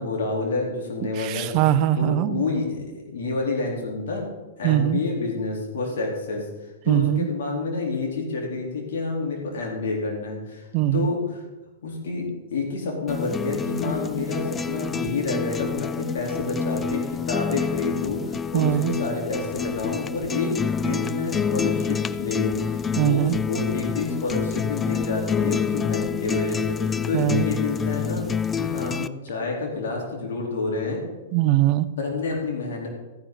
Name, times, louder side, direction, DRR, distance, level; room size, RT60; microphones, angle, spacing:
voice 1, 0.0-1.5 2.0-4.3 4.6-6.5 6.9-10.7 10.9-11.4 11.8-28.3 28.6-31.0 32.0-32.9, left 3 dB, 60° left, -1 dB, 3.5 m, -28 dB
voice 2, 1.1-2.4 4.6-5.0 6.9-7.3 10.7-11.1 18.5-18.9 23.0-23.4 27.1-27.5 31.3-31.9, right 13 dB, 40° right, 14 dB, 0.6 m, -21 dB
sound 1, 13.1-29.1, left 6 dB, 15° left, 0.4 m, -28 dB
14.0 x 9.9 x 3.9 m, 1.1 s
figure-of-eight pair, 105°, 0 cm